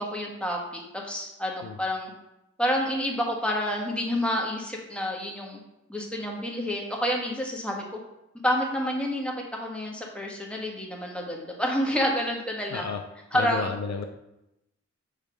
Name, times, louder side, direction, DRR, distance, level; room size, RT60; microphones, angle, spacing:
voice 1, 0.0-2.1 2.6-5.6 5.9-8.0 8.4-9.3 9.6-12.9 13.3-13.7, equal, 5° left, -1 dB, 1.6 m, -29 dB
voice 2, 12.7-13.0 13.3-14.1, left 5 dB, 65° left, 4 dB, 0.6 m, -31 dB
6.7 x 3.2 x 5.1 m, 0.88 s
wide cardioid pair, 75°, 29 cm